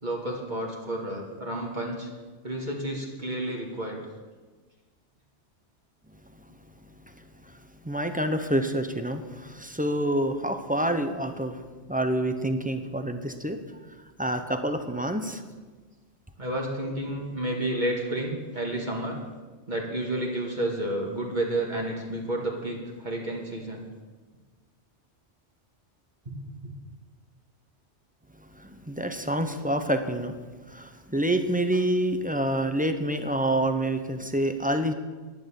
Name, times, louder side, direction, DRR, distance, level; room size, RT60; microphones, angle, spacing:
voice 1, 0.0-2.1 2.4-4.0 16.4-19.2 19.7-23.9 26.6-26.7, right 1 dB, 40° right, -2 dB, 2.0 m, -31 dB
voice 2, 7.2-7.5 7.8-11.6 11.9-13.6 14.2-15.4 28.5-30.4 30.7-34.9, right 1 dB, 10° right, 7 dB, 0.8 m, -27 dB
11.5 x 10.5 x 7.2 m, 1.3 s
omnidirectional pair, 1.2 m